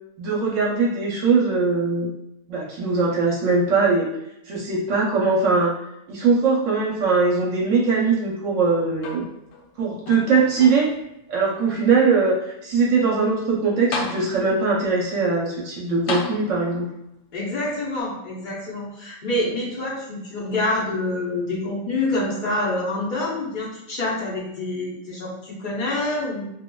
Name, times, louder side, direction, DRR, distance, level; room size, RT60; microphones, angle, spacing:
voice 1, 0.2-2.1 2.5-4.1 4.5-5.7 6.1-9.2 9.8-10.9 11.3-12.4 12.6-16.9, right 4 dB, 65° right, -2 dB, 0.9 m, -21 dB
sound 1, 9.0-9.7 10.1-11.1 11.8-11.9 13.4-13.5 13.9-14.7 16.1-16.9 18.0-18.1, left 3 dB, 70° left, 0.9 m, -32 dB
voice 2, 17.3-26.4, left 2 dB, 40° left, -6 dB, 0.8 m, -26 dB
2.9 x 2.5 x 2.2 m, 0.84 s
omnidirectional pair, 1.5 m